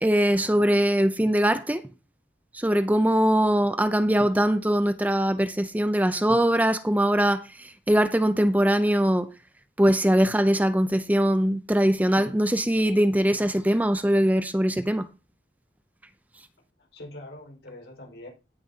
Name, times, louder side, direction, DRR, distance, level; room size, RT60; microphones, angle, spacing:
voice 1, 0.0-1.8 2.5-9.3 9.8-15.1, equal, 10° right, 0.5 m, -22 dB
voice 2, 16.8-18.3, left 1 dB, 85° left, 5.1 m, -43 dB
16.5 x 7.3 x 2.8 m
head